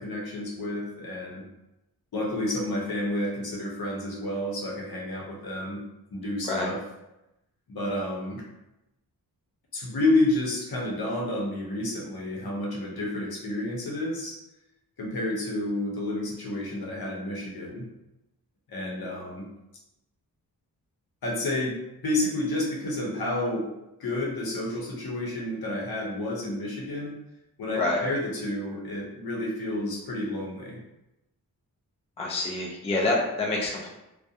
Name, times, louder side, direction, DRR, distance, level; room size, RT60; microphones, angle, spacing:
voice 1, 0.0-1.5 2.1-5.8 6.1-6.8 7.7-8.4 9.7-14.4 15.0-17.9 18.7-19.5 21.2-21.8 22.0-23.7 24.0-27.1 27.6-30.8, left 1 dB, 75° left, -2 dB, 0.7 m, -30 dB
voice 2, 32.2-33.9, left 2 dB, 15° left, -2 dB, 0.4 m, -27 dB
2.3 x 2.1 x 2.7 m, 0.92 s
wide cardioid pair, 130°, 37 cm